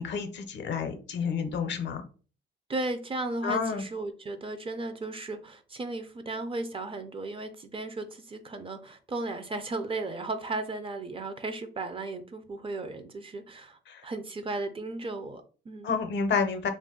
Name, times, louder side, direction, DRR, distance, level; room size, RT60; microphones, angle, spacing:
voice 1, 0.0-2.0 3.4-3.8 13.9-14.1 15.8-16.7, left 5 dB, 65° left, 7 dB, 0.6 m, -29 dB
voice 2, 2.7-15.9, right 2 dB, 25° right, 9 dB, 0.4 m, -35 dB
2.4 x 2.2 x 3.6 m, 0.38 s
cardioid pair, 90°, 20 cm